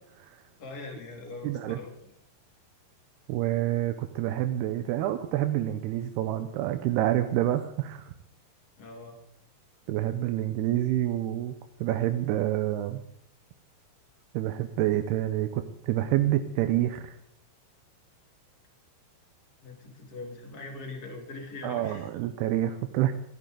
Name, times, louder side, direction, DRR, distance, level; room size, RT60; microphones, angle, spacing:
voice 1, 0.6-2.1 8.8-9.2 19.6-22.1, left 3 dB, 25° left, 2 dB, 2.7 m, -42 dB
voice 2, 1.4-1.8 3.3-8.1 9.9-11.5 11.8-13.0 14.3-17.2 21.6-23.1, right 13 dB, 85° right, 8 dB, 2.8 m, -27 dB
28.0 x 11.0 x 3.8 m, 0.69 s
omnidirectional pair, 4.6 m